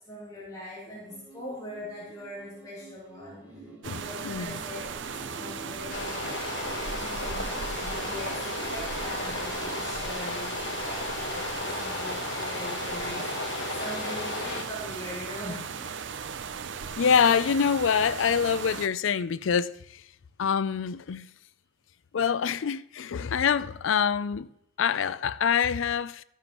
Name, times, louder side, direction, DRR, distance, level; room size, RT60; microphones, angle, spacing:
voice 1, 0.1-6.4 7.0-16.0, left 1 dB, 20° left, 2.9 m, -41 dB
sound 1, 1.1-9.8, right 2 dB, 10° right, 2.1 m, -48 dB
sound 2, 3.8-18.9, right 6 dB, 75° right, 0.5 m, -37 dB
voice 2, 4.2-4.6 17.0-20.0 20.4-21.3 22.1-24.5 24.8-26.2, left 7 dB, 85° left, 0.4 m, -25 dB
sound 3, 5.9-14.6, left 3 dB, 65° left, 1.3 m, -34 dB
13.5 x 10.5 x 3.0 m
head